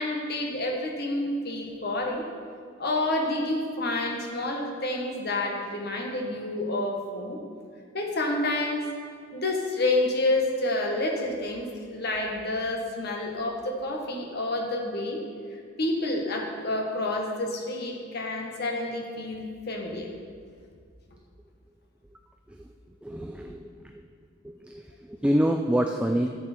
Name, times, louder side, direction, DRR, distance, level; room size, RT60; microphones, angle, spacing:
voice 1, 0.0-2.3 2.8-7.4 7.9-8.9 9.3-15.2 15.8-20.1, left 2 dB, 55° left, 1 dB, 1.4 m, -29 dB
voice 2, 23.0-24.0 24.4-26.3, equal, 5° right, 3 dB, 0.3 m, -27 dB
12.0 x 7.4 x 4.5 m, 2.1 s
head